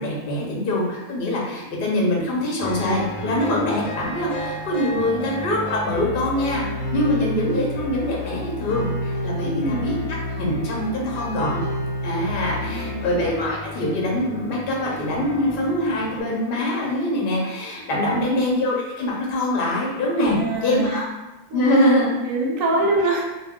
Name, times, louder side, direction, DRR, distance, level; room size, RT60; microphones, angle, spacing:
voice 1, 0.0-6.7 6.9-9.9 10.4-11.6 12.0-21.1 21.5-22.1, left 1 dB, 50° left, -3 dB, 0.7 m, -23 dB
sound 1, 2.6-16.2, equal, 80° left, 1.0 m, -30 dB
voice 2, 9.3-10.1 12.6-13.1 18.1-18.4 20.2-21.0 21.5-21.8 22.3-23.2, right 2 dB, 70° right, -1 dB, 0.9 m, -25 dB
2.3 x 2.3 x 3.5 m, 1.0 s
omnidirectional pair, 1.5 m